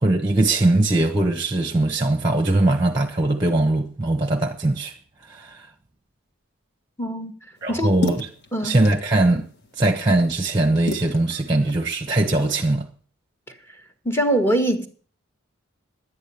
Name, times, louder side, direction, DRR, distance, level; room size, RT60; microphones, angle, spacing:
voice 1, 0.0-4.9 5.3-5.7 7.6-8.3 8.6-9.5 9.8-12.9, right 2 dB, 20° right, 1.0 m, -21 dB
voice 2, 7.0-7.3 7.7-7.9 8.5-8.8 14.0-14.9, right 1 dB, 10° left, 1.4 m, -22 dB
sound 1, 7.6-12.7, left 2 dB, 50° left, 1.7 m, -35 dB
11.0 x 9.4 x 6.9 m
head